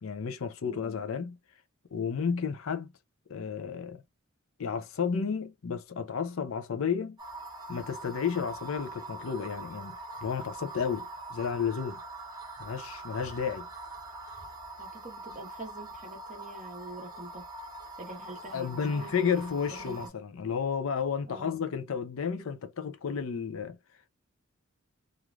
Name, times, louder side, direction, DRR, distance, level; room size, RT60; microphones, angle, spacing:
voice 1, 0.0-1.4 1.9-2.9 3.3-4.0 4.6-7.2 7.7-10.0 10.2-12.0 12.6-13.7 18.5-23.8, left 6 dB, 70° left, 0.5 m, -32 dB
sound 1, 7.2-20.1, right 2 dB, 20° right, 0.8 m, -43 dB
voice 2, 14.8-17.5 18.0-20.0 21.2-21.6, right 2 dB, 35° right, 1.2 m, -45 dB
3.1 x 2.5 x 2.3 m
head